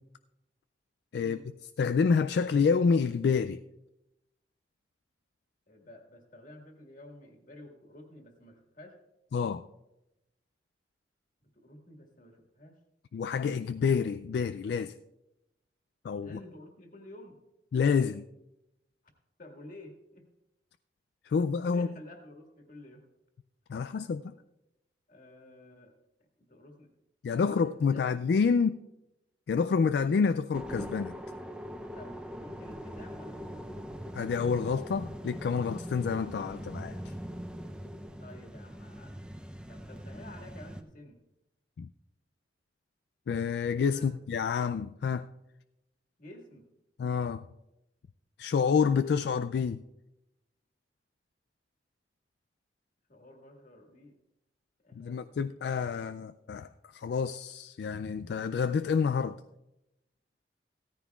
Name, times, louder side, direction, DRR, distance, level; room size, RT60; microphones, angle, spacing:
voice 1, 1.2-1.5 5.7-9.0 11.5-12.8 16.2-17.4 19.4-20.3 21.4-23.0 25.1-26.0 26.4-26.9 27.3-28.1 31.9-33.6 38.2-39.1 39.7-41.2 43.9-44.1 46.2-46.7 53.1-54.2 54.8-55.4, left 1 dB, 50° left, 1.8 m, -51 dB
voice 2, 1.8-3.6 9.3-9.6 13.1-14.9 16.0-16.4 17.7-18.3 21.2-21.9 23.7-24.3 27.2-28.8 29.5-31.2 34.1-37.1 41.8-41.9 43.3-45.3 47.0-47.4 48.4-49.8 54.9-59.4, left 5 dB, 70° left, 0.3 m, -28 dB
sound 1, 30.5-40.8, equal, 5° right, 0.5 m, -41 dB
16.5 x 13.5 x 2.4 m
head